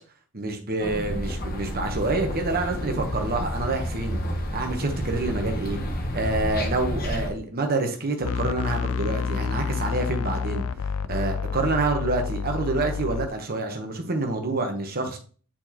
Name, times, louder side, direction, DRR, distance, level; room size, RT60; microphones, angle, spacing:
voice 1, 0.3-4.2 4.5-5.8 6.1-10.6 11.1-15.2, right 2 dB, 45° right, 3 dB, 1.1 m, -27 dB
sound 1, 0.8-7.3, equal, 40° left, 1.1 m, -30 dB
sound 2, 8.2-13.3, left 6 dB, 65° left, 0.4 m, -29 dB
8.7 x 4.4 x 3.0 m, 0.40 s
head